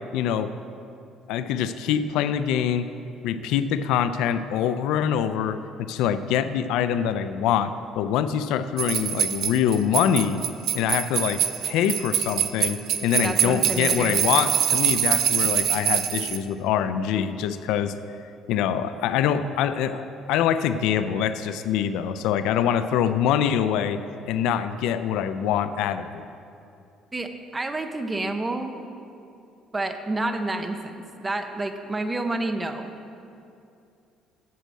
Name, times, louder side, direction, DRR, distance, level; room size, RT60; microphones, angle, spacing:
voice 1, 0.1-0.5 1.3-2.9 3.2-10.4 10.7-17.9 18.5-24.0 24.2-26.2, left 9 dB, 80° left, 11 dB, 0.4 m, -24 dB
Jingle Bells, 8.8-16.4, right 9 dB, 55° right, 0.5 m, -24 dB
voice 2, 13.2-14.2 27.1-28.7 29.7-32.9, right 2 dB, 15° right, 6 dB, 0.6 m, -29 dB
8.3 x 7.5 x 7.4 m, 2.6 s
cardioid pair, 155°, 0 cm